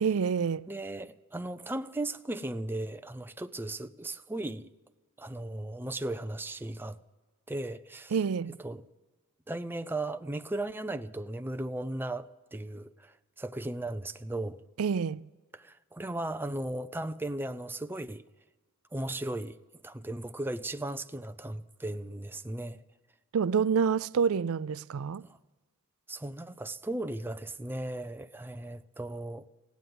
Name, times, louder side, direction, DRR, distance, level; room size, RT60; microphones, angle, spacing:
voice 1, 0.0-0.7 8.1-8.6 14.8-15.3 23.3-25.2, right 6 dB, 70° right, 0.4 m, -27 dB
voice 2, 0.7-4.7 5.2-7.0 7.5-8.2 8.6-8.8 9.5-14.6 15.5-18.2 18.9-19.6 19.8-22.8 25.2-25.4 26.1-29.4, right 1 dB, 10° right, 0.4 m, -36 dB
16.0 x 9.3 x 9.4 m
head